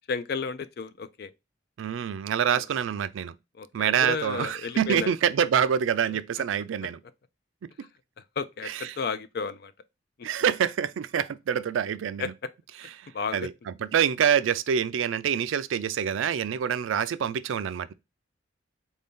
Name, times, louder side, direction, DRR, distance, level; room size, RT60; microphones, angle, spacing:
voice 1, 0.1-1.3 2.5-2.6 3.6-5.1 8.4-9.7 12.2-12.3 13.1-13.5, left 5 dB, 55° left, 0.4 m, -32 dB
voice 2, 1.8-3.3 3.7-7.0 7.8-7.9 8.6-9.0 10.2-12.3 13.0-17.9, right 8 dB, 90° right, 0.3 m, -26 dB
4.2 x 2.7 x 3.5 m
head